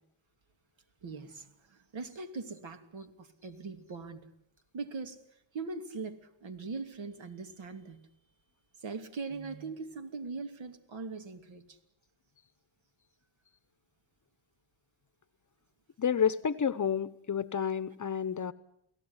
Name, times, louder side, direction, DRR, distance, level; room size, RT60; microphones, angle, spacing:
voice 1, 1.0-4.2 4.7-5.2 5.5-8.0 8.8-11.6, right 4 dB, 65° right, 8 dB, 2.9 m, -41 dB
voice 2, 16.0-18.5, left 7 dB, 35° left, 16 dB, 0.9 m, -30 dB
29.0 x 17.5 x 9.8 m, 0.74 s
cardioid pair, 125°, 49 cm